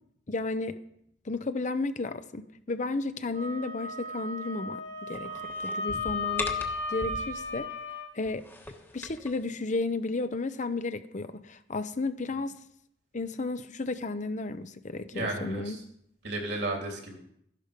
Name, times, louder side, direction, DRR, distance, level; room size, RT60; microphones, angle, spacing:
voice 1, 0.3-0.8 1.2-6.5 6.9-7.7 8.1-8.5 8.9-12.6 13.1-15.8, left 3 dB, 45° left, 0.7 m, -33 dB
Wind instrument woodwind instrument, 3.3-8.1, left 3 dB, 75° left, 2.6 m, -35 dB
sound 1, 5.1-7.6 8.2-9.4, left 1 dB, 15° left, 1.3 m, -39 dB
voice 2, 15.1-15.8 16.2-17.2, right 2 dB, 65° right, 3.4 m, -33 dB
13.0 x 11.0 x 5.2 m
head